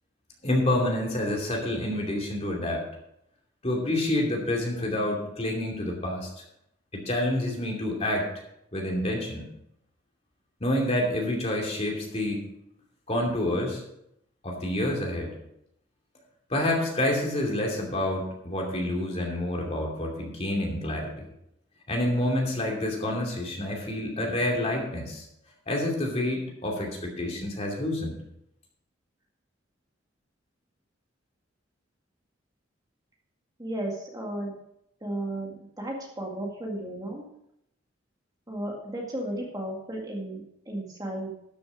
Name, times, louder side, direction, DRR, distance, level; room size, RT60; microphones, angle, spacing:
voice 1, 0.4-2.9 3.6-6.3 6.9-8.3 8.7-9.5 10.6-12.5 13.1-13.8 14.4-15.4 16.5-21.3 21.9-25.3 25.7-28.1, left 1 dB, 30° left, 0 dB, 2.6 m, -28 dB
voice 2, 33.6-34.6 35.0-37.3 38.5-41.3, right 1 dB, 20° right, -1 dB, 2.0 m, -34 dB
13.0 x 6.9 x 5.1 m, 0.78 s
head